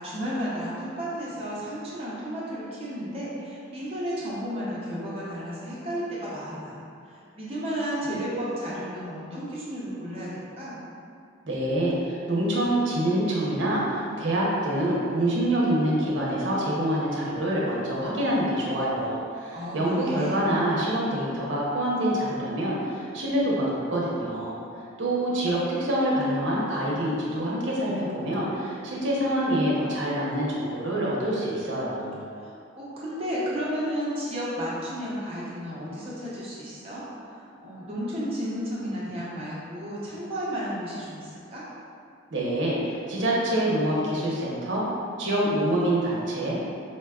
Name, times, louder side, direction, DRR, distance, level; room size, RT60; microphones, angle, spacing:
voice 1, 0.0-6.8 7.0-10.8 19.5-20.5 32.4-41.6, equal, 30° right, -8 dB, 0.6 m, -33 dB
voice 2, 11.5-24.6 25.0-32.2 42.3-44.9 45.2-46.6, right 1 dB, 65° right, -5 dB, 0.7 m, -26 dB
4.1 x 2.2 x 2.3 m, 2.5 s
head